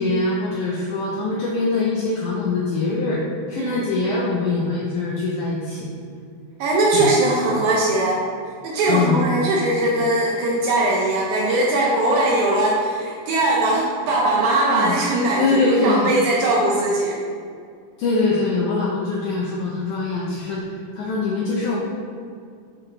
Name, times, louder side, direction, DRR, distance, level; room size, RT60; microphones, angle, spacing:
voice 1, 0.0-3.2 3.5-5.9 6.9-7.1 8.9-9.2 14.7-14.9 15.4-16.1 18.0-21.8, left 3 dB, 80° left, -4 dB, 1.7 m, -23 dB
voice 2, 6.6-8.2 8.6-17.2, right 2 dB, 90° right, -3 dB, 1.6 m, -20 dB
6.1 x 4.6 x 3.8 m, 2.3 s
omnidirectional pair, 4.2 m